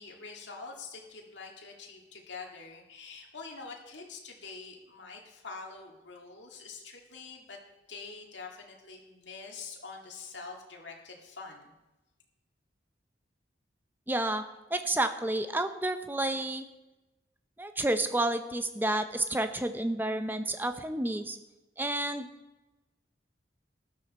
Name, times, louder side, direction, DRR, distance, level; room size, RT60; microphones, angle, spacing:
voice 1, 0.0-7.6 7.9-11.7, left 4 dB, 80° left, 0 dB, 2.0 m, -45 dB
voice 2, 14.1-14.4 14.7-16.6 17.6-21.4 21.8-22.3, right 1 dB, 10° right, 9 dB, 0.6 m, -30 dB
13.0 x 12.0 x 4.2 m, 1.0 s
head